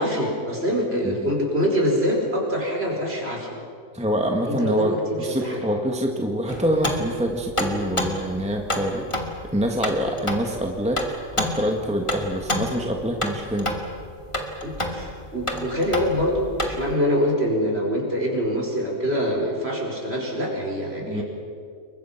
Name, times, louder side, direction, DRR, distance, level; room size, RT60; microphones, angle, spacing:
voice 1, 0.0-3.6 4.5-5.6 10.0-10.1 14.6-21.2, equal, 45° right, 0 dB, 5.3 m, -25 dB
voice 2, 3.9-9.1 9.5-11.0 11.3-13.7 21.0-21.2, equal, 5° right, 2 dB, 1.7 m, -25 dB
sound 1, 6.5-16.9, left 1 dB, 20° left, 2.2 m, -29 dB
29.0 x 22.5 x 5.9 m, 2.3 s
omnidirectional pair, 1.5 m